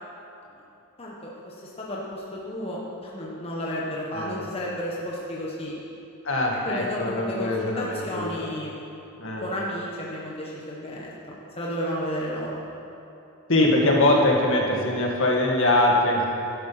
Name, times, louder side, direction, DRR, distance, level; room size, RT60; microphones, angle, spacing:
voice 1, 1.0-5.7 6.6-8.7 9.4-12.6, equal, 25° left, -5 dB, 1.4 m, -32 dB
voice 2, 6.2-8.3 9.2-9.4 13.5-16.3, left 1 dB, 60° left, -1 dB, 2.1 m, -22 dB
12.0 x 11.5 x 5.9 m, 2.8 s
head